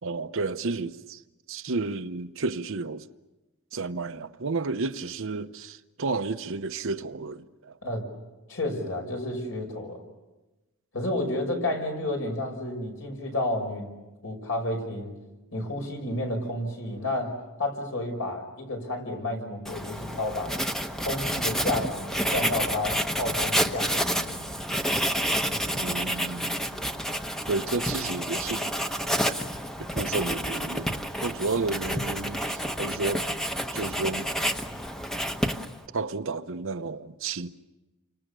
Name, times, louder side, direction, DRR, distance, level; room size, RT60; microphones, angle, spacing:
voice 1, 0.0-1.2 1.5-3.1 3.7-7.8 25.7-26.5 27.5-28.7 29.8-33.3 33.7-34.3 35.9-37.5, right 3 dB, 60° right, 0.9 m, -32 dB
voice 2, 8.5-10.0 10.9-14.0 14.2-15.2 15.5-20.5 21.0-24.5, left 1 dB, 65° left, 5.8 m, -31 dB
Writing, 19.6-35.9, equal, ahead, 1.0 m, -29 dB
30.0 x 25.5 x 6.9 m
head